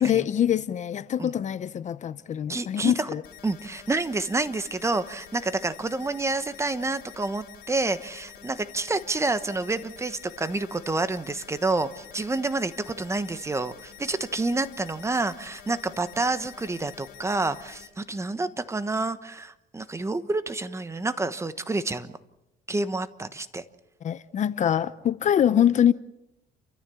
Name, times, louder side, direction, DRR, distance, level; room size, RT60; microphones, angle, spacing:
voice 1, 0.0-3.2 24.0-25.9, left 10 dB, 45° left, 0.7 m, -24 dB
voice 2, 2.5-3.1 3.4-22.1 22.7-23.6, right 3 dB, 15° right, 1.2 m, -28 dB
sound 1, 3.2-17.9, left 9 dB, 70° left, 3.9 m, -48 dB
30.0 x 14.0 x 7.1 m
cardioid pair, 110°, 17 cm